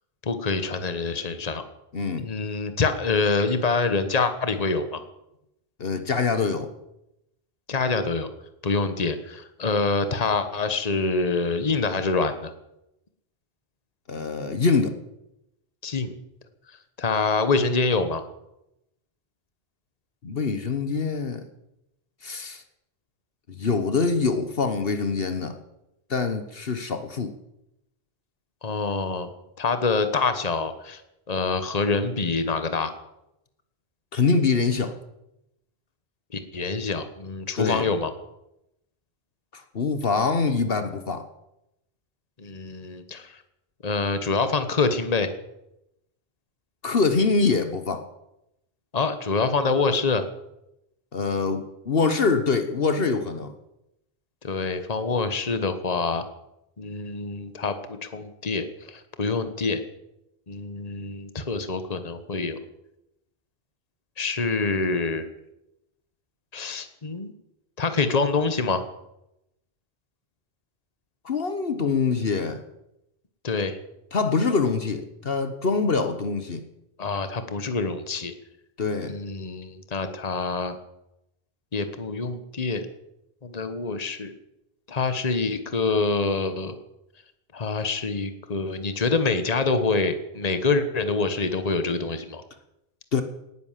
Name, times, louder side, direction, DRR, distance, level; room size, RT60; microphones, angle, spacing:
voice 1, 0.2-1.6 2.2-5.0 7.7-8.3 8.6-12.5 15.8-16.2 17.0-18.2 28.6-29.3 29.6-31.0 31.3-32.9 36.3-38.1 42.4-43.3 43.8-45.3 48.9-50.2 54.4-56.2 56.8-59.8 60.5-62.6 64.2-65.2 66.5-67.3 67.8-68.8 73.4-73.8 77.0-78.3 79.0-80.8 81.7-82.9 83.4-84.3 84.9-86.8 87.5-92.4, left 4 dB, 40° left, 10 dB, 1.4 m, -26 dB
voice 2, 1.9-2.3 5.8-6.7 14.1-14.9 20.2-21.4 22.2-22.6 23.5-25.6 26.1-27.3 34.1-34.9 37.6-37.9 39.5-41.3 46.8-48.1 51.1-53.5 71.2-72.6 74.1-76.6 78.8-79.1 93.1-93.2, left 4 dB, 65° left, 9 dB, 1.4 m, -24 dB
18.5 x 10.5 x 7.5 m, 0.86 s
omnidirectional pair, 1.1 m